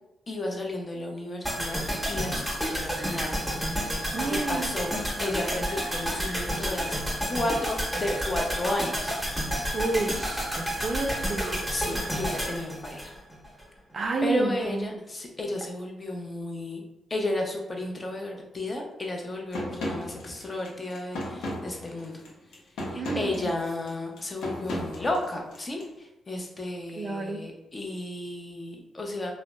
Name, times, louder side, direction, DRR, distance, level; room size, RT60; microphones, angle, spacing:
voice 1, 0.3-1.8 2.1-2.4 2.7-3.3 4.2-4.9 5.2-7.0 7.3-9.1 11.7-13.1 14.2-16.8 17.1-22.2 22.8-29.3, left 1 dB, 35° left, 2 dB, 0.5 m, -33 dB
sound 1, 1.5-13.6 13.9-14.0, equal, 5° left, 0.9 m, -30 dB
voice 2, 4.1-4.8 5.1-5.6 9.7-11.6 13.9-15.0 22.9-23.5 27.0-27.4, right 3 dB, 55° right, 4 dB, 0.3 m, -30 dB
sound 2, 19.5-25.9, left 1 dB, 85° left, 0.5 m, -36 dB
2.7 x 2.0 x 2.2 m, 0.91 s
supercardioid pair, 60°, 0 cm